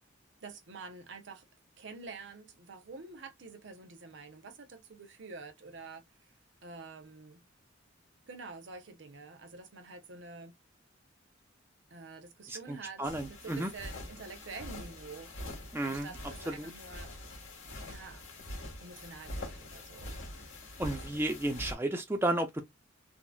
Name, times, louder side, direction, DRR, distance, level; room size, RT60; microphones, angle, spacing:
voice 1, 0.4-1.5 1.8-6.0 6.6-7.4 8.3-10.5 11.9-15.3 15.8-17.1 17.8-18.2 18.8-20.1, right 4 dB, 65° right, 0.7 m, -47 dB
voice 2, 12.5-13.7 15.7-16.1 16.5-16.7 20.8-22.6, right 1 dB, 10° right, 0.4 m, -33 dB
sound 1, 13.0-21.7, left 1 dB, 85° left, 1.6 m, -44 dB
3.7 x 2.0 x 2.3 m
head